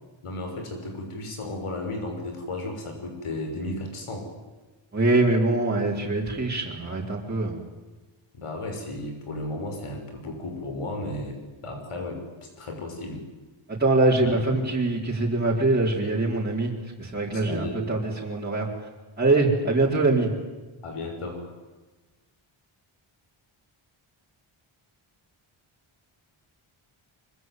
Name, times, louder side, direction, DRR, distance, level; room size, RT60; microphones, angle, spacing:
voice 1, 0.2-4.3 8.3-13.2 14.2-14.7 17.3-17.8 20.8-21.5, left 2 dB, 85° left, 4 dB, 6.3 m, -34 dB
voice 2, 4.9-7.6 13.7-18.9 19.2-20.3, right 2 dB, 20° right, -4 dB, 4.2 m, -23 dB
24.5 x 24.0 x 9.4 m, 1.2 s
wide cardioid pair, 165°, 50 cm